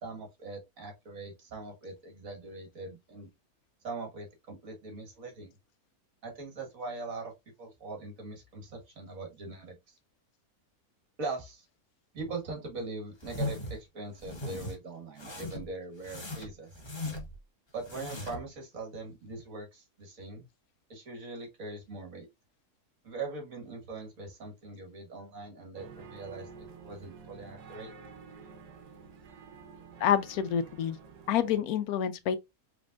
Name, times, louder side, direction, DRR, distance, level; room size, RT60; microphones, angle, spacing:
voice 1, 0.0-3.3 3.8-5.6 6.2-7.3 7.6-10.0 11.2-11.7 12.1-16.7 17.7-20.4 20.9-22.3 23.0-26.5 26.8-27.9, right 3 dB, 60° right, 2.0 m, -41 dB
sound 1, 13.2-13.8 14.2-14.7 15.2-15.7 16.0-17.4 17.8-18.5, left 2 dB, 20° left, 1.1 m, -38 dB
Bells ringing at Notre-Dame Cathedral in Paris France, 25.8-31.6, right 5 dB, 85° right, 1.5 m, -50 dB
voice 2, 30.0-31.0 31.3-32.4, left 9 dB, 75° left, 1.2 m, -28 dB
5.2 x 3.6 x 2.5 m
omnidirectional pair, 1.6 m